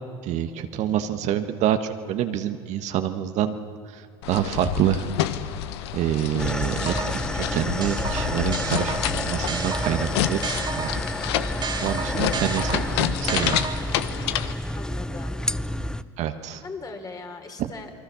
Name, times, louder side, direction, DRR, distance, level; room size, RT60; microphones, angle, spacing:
voice 1, 0.2-3.5 3.9-5.1 5.9-6.9 7.3-10.9 11.8-13.6 16.2-16.6, right 10 dB, 60° right, 8 dB, 1.4 m, -27 dB
voice 2, 0.8-1.4 3.0-3.2 12.5-12.6 14.7-16.1 16.6-17.9, left 4 dB, 25° left, 5 dB, 3.5 m, -41 dB
sound 1, 4.2-14.5, left 11 dB, 80° left, 1.1 m, -29 dB
sound 2, 6.4-16.0, left 1 dB, 5° left, 0.7 m, -30 dB
sound 3, 6.6-7.3 7.8-11.1 11.6-14.1, right 5 dB, 30° right, 1.9 m, -33 dB
28.5 x 21.0 x 7.0 m, 2.2 s
hypercardioid pair, 80°, 14 cm